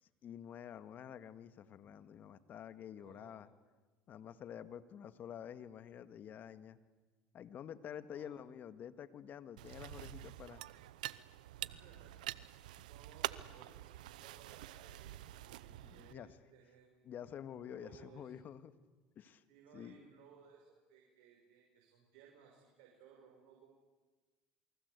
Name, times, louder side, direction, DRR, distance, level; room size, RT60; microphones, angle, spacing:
voice 1, 0.2-3.5 4.1-6.8 7.3-10.6 12.8-12.9 15.7-16.3 17.0-18.7 19.2-19.4 19.7-20.0, left 9 dB, 45° left, 11 dB, 1.8 m, -49 dB
voice 2, 3.0-3.4 8.1-8.4 11.6-12.3 12.9-16.9 17.7-18.3 19.5-23.7, right 7 dB, 75° right, 0 dB, 6.5 m, -61 dB
sound 1, 9.6-16.1, right 15 dB, 90° right, 0.8 m, -46 dB
28.5 x 23.5 x 8.3 m, 1.3 s
supercardioid pair, 90°, 4 cm